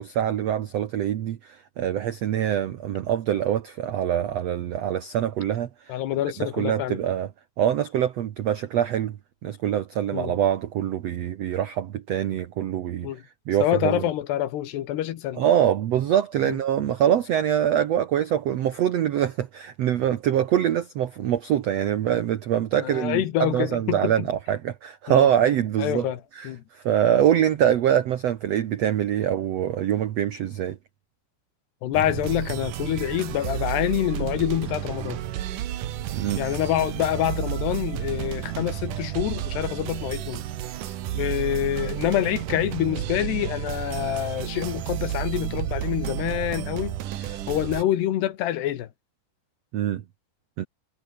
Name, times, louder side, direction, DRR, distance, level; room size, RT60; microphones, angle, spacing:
voice 1, 0.0-6.0 6.4-7.3 7.6-9.2 9.4-13.1 13.5-14.1 15.4-26.5 26.7-30.8 36.1-36.4 49.7-50.0 50.6-50.7, right 10 dB, 90° right, 1.4 m, -24 dB
voice 2, 5.9-7.0 10.1-10.3 13.0-13.2 13.6-15.4 16.5-16.6 22.8-24.3 25.1-25.3 25.8-26.2 26.5-26.6 31.8-35.2 36.4-40.4 41.1-47.0 47.3-48.9, left 12 dB, 90° left, 3.7 m, -26 dB
sound 1, 31.9-47.8, right 12 dB, 65° right, 2.5 m, -31 dB
omnidirectional pair, 4.6 m